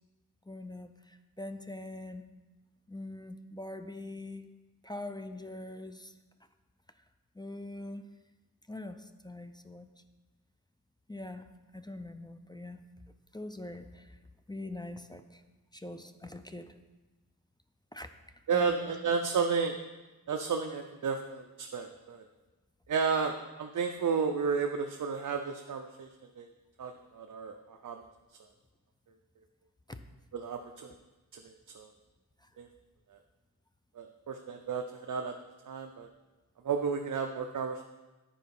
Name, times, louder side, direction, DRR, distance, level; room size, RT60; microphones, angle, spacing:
voice 1, 0.5-2.2 2.9-4.5 4.8-6.1 7.4-8.1 8.7-9.9 11.1-12.8 13.3-14.2 14.5-15.4 15.7-16.7 17.9-18.1 18.5-18.8 29.9-30.0 32.4-32.5, left 2 dB, 10° left, 8 dB, 0.4 m, -43 dB
voice 2, 18.5-19.8 20.3-22.2 22.9-26.1 26.4-26.5 26.8-28.0 30.3-30.9 31.3-31.9 32.6-32.7 34.0-35.3 35.7-36.1 36.6-37.8, right 5 dB, 55° right, 4 dB, 0.6 m, -32 dB
10.0 x 4.6 x 5.4 m, 1.2 s
wide cardioid pair, 125°, 37 cm